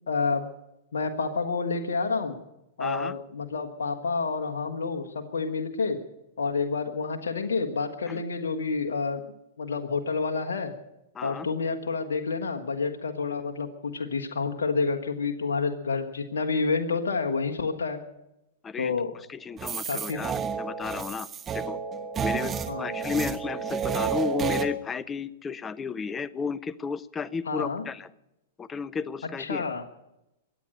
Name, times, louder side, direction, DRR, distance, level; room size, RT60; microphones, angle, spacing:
voice 1, 0.1-0.5 0.9-2.4 2.8-6.0 6.4-9.2 9.6-10.7 11.2-18.0 18.8-19.1 19.9-20.2 22.7-22.9 27.5-27.8 29.4-29.8, left 4 dB, 80° left, 3 dB, 1.5 m, -29 dB
voice 2, 2.8-3.2 8.1-8.2 11.1-11.5 18.6-18.9 19.3-21.3 21.5-21.8 22.2-28.1 28.6-29.7, left 5 dB, 20° left, 17 dB, 0.6 m, -33 dB
sound 1, 19.6-24.7, right 6 dB, 25° right, 1.3 m, -30 dB
23.0 x 9.1 x 6.6 m, 0.88 s
hypercardioid pair, 110°, 0 cm